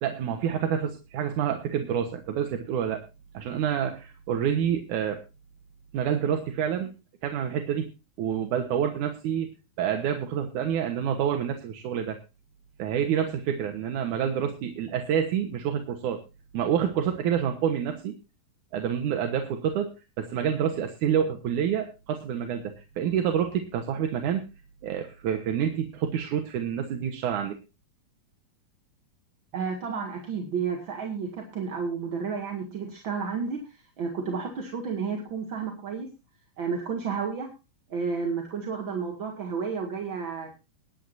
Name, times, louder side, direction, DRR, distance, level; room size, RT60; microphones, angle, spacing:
voice 1, 0.0-3.0 3.3-5.2 5.9-6.9 7.2-7.9 8.2-9.5 9.8-12.2 12.8-16.2 16.5-18.1 18.7-19.9 20.2-24.4 24.8-27.6, right 8 dB, 65° right, 4 dB, 2.3 m, -28 dB
voice 2, 29.5-36.1 36.6-37.5 37.9-40.5, right 5 dB, 40° right, 2 dB, 2.2 m, -31 dB
21.5 x 10.0 x 2.6 m, 0.29 s
omnidirectional pair, 4.4 m